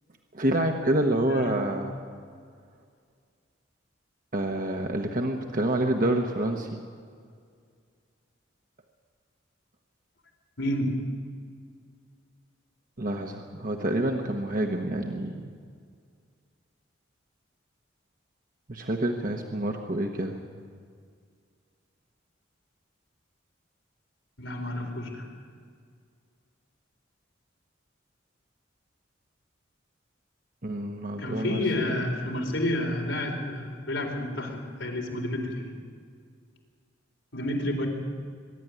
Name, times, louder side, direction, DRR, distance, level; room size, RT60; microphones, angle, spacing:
voice 1, 0.3-1.9 4.3-6.8 13.0-15.5 18.7-20.4 30.6-32.0, right 1 dB, 45° right, 3 dB, 1.2 m, -28 dB
voice 2, 1.3-1.6 10.6-11.0 24.4-25.3 31.2-35.8 37.3-37.9, left 1 dB, 85° left, 1 dB, 4.1 m, -30 dB
23.0 x 12.0 x 9.8 m, 2.1 s
head